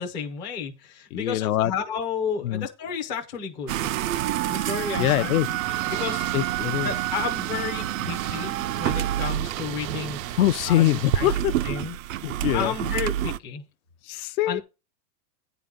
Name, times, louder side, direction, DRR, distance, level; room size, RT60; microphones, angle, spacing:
voice 1, 0.0-3.9 4.5-5.6 5.9-6.3 6.7-10.2 10.7-11.3 11.6-12.0 12.5-13.6 14.5-14.6, left 6 dB, 10° left, 0.4 m, -32 dB
voice 2, 1.1-1.7 2.4-2.7 5.0-5.5 6.3-6.9 10.4-11.5 12.2-12.7 14.1-14.6, left 14 dB, 60° left, 0.6 m, -23 dB
sound 1, 3.7-13.4, right 12 dB, 55° right, 0.5 m, -29 dB
sound 2, 5.6-11.4, right 11 dB, 85° right, 0.8 m, -34 dB
9.9 x 3.9 x 7.2 m
supercardioid pair, 170°, 49 cm